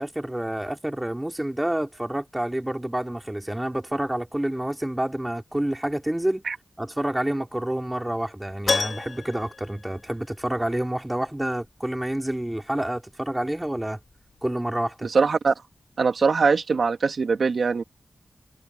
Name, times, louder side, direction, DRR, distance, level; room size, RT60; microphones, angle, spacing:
voice 1, 0.0-6.4 6.8-14.0 14.4-15.1, right 1 dB, 10° right, 3.6 m, -28 dB
Keyboard (musical), 8.7-10.7 11.0-11.1 13.8-13.9 14.1-14.2, left 4 dB, 60° left, 2.6 m, -30 dB
voice 2, 15.0-15.5 16.0-17.8, right 4 dB, 70° right, 2.6 m, -22 dB
wide cardioid pair, 90°, 0 cm